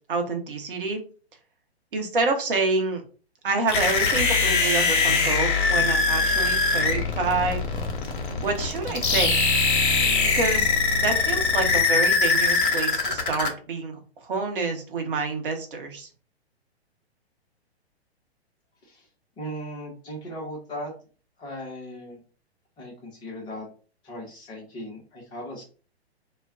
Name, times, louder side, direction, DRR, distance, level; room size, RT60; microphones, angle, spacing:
voice 1, 0.1-1.0 1.9-3.0 3.4-7.6 8.4-9.4 10.3-10.7 11.0-16.1, right 3 dB, 55° right, 4 dB, 0.8 m, -27 dB
sound 1, 3.7-13.5, left 4 dB, 50° left, 0.8 m, -22 dB
voice 2, 19.4-20.9 21.4-22.2 22.8-23.7 24.0-25.6, equal, 15° left, -2 dB, 0.7 m, -37 dB
2.3 x 2.1 x 3.6 m, 0.38 s
figure-of-eight pair, 115°, 33 cm